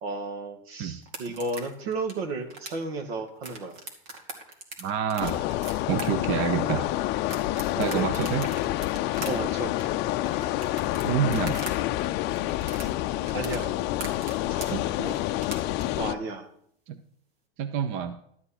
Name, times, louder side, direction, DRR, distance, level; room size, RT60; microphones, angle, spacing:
voice 1, 0.0-3.8 7.8-8.1 9.3-9.8 12.8-13.0 13.3-13.7 14.5-14.9 16.0-16.5, right 3 dB, 80° right, 7 dB, 1.9 m, -33 dB
sound 1, 1.0-11.7 12.0-15.8, right 3 dB, 60° right, 2.3 m, -41 dB
voice 2, 4.8-5.5 5.9-6.9 7.8-8.6 11.0-11.6 15.0-15.2 16.9-17.0 17.6-18.1, right 8 dB, 40° right, 11 dB, 0.8 m, -28 dB
sound 2, 5.2-16.1, left 15 dB, 35° left, 0.5 m, -28 dB
12.5 x 7.8 x 4.3 m, 0.67 s
supercardioid pair, 135°, 31 cm